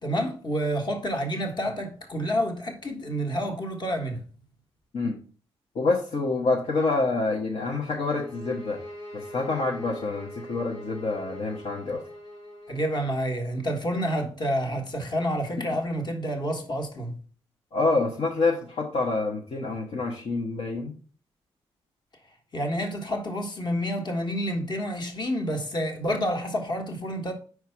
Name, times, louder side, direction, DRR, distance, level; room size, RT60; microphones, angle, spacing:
voice 1, 0.0-4.3 12.7-17.2 22.5-27.3, equal, 40° left, 1.6 m, -29 dB
voice 2, 5.7-8.8 9.1-12.0 17.7-21.0, left 3 dB, 60° left, 1.1 m, -27 dB
sound 1, 8.0-12.9, left 1 dB, 85° left, 1.9 m, -42 dB
4.8 x 4.6 x 5.7 m
supercardioid pair, 60°, 11 cm